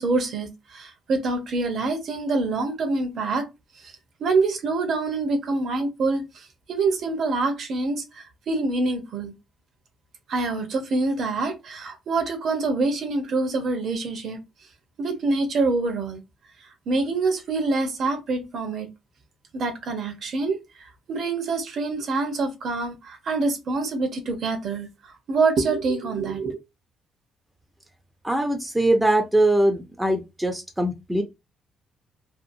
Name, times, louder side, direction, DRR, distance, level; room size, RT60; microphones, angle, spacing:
voice 1, 0.0-3.5 3.8-3.9 4.2-9.3 10.3-14.4 15.0-16.2 16.9-18.9 19.5-24.9 25.3-26.6, right 3 dB, 60° right, 0.9 m, -26 dB
voice 2, 28.2-31.2, right 1 dB, 5° right, 0.5 m, -22 dB
2.7 x 2.4 x 2.6 m
cardioid pair, 90°, 0 cm